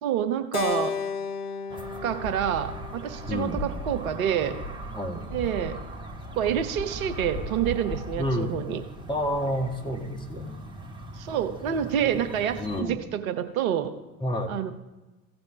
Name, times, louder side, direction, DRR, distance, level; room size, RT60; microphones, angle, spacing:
voice 1, 0.0-0.9 2.0-4.5 5.3-5.8 6.4-8.8 11.1-13.9 14.5-14.7, right 9 dB, 65° right, 9 dB, 0.8 m, -27 dB
Keyboard (musical), 0.5-4.9, left 6 dB, 85° left, 0.5 m, -35 dB
sound 1, 1.7-12.8, equal, 10° right, 1.3 m, -38 dB
voice 2, 3.3-3.6 4.9-5.3 8.2-8.6 9.1-10.6 12.2-12.3 12.6-13.0 14.2-14.6, equal, 10° left, 1 dB, 1.9 m, -29 dB
15.0 x 5.2 x 5.9 m, 1.1 s
figure-of-eight pair, 60°, 44 cm